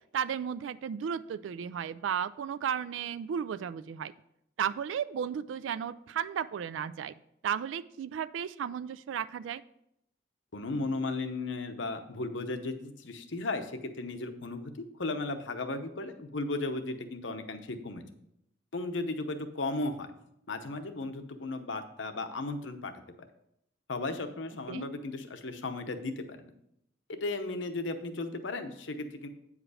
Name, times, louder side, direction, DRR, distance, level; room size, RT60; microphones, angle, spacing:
voice 1, 0.1-4.1 4.6-7.1 7.4-9.6 24.7-24.9, right 8 dB, 90° right, 15 dB, 0.3 m, -34 dB
voice 2, 10.5-14.7 15.0-18.0 18.7-20.1 20.5-22.9 23.2-23.3 23.9-26.5 27.1-29.3, left 2 dB, 85° left, 8 dB, 0.9 m, -35 dB
8.8 x 4.9 x 4.9 m, 0.78 s
head